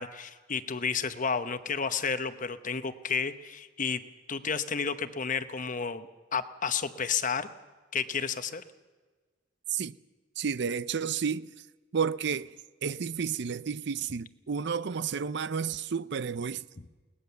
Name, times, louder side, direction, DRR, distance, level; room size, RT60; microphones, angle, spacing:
voice 1, 0.0-4.0 4.3-7.5 7.9-8.6, left 6 dB, 45° left, 1.0 m, -31 dB
voice 2, 10.4-11.5 11.9-12.5 12.8-16.6, right 6 dB, 65° right, 0.5 m, -31 dB
21.5 x 19.0 x 6.9 m
head